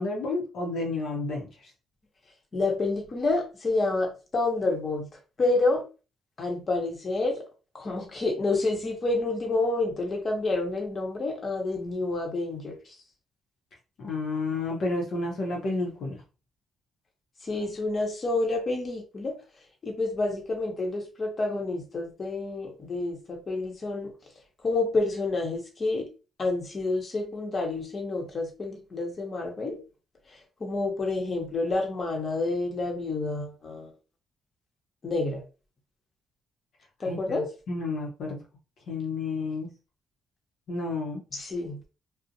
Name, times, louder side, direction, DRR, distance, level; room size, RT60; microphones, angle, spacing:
voice 1, 0.0-1.7 14.0-16.2 37.0-38.4 38.9-39.7 40.7-41.2, left 3 dB, 65° left, 0.7 m, -31 dB
voice 2, 2.5-5.1 5.4-5.8 6.4-7.4 7.7-12.7 17.4-19.4 19.8-24.1 24.6-26.1 26.4-29.8 30.6-33.9 35.0-35.4 37.0-37.4 41.3-41.8, left 2 dB, 40° left, 0.9 m, -28 dB
2.5 x 2.0 x 2.7 m
cardioid pair, 90°, 0 cm